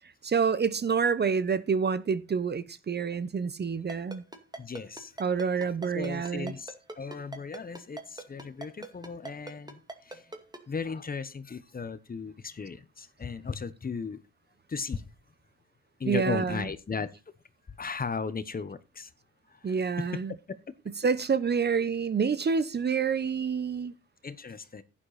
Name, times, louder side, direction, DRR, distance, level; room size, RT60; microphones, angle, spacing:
voice 1, 0.2-4.2 5.2-6.5 16.1-16.7 19.6-20.3 20.9-23.9, right 6 dB, 35° right, 0.9 m, -28 dB
Ringtone, 3.9-10.6, right 2 dB, 15° right, 2.2 m, -40 dB
voice 2, 4.6-5.1 5.9-10.3 10.7-14.2 14.7-15.1 16.0-17.1 17.8-19.1 19.5-20.2 20.5-20.6 24.2-24.8, left 5 dB, 30° left, 1.2 m, -36 dB
11.0 x 9.8 x 4.2 m
cardioid pair, 90°, 30 cm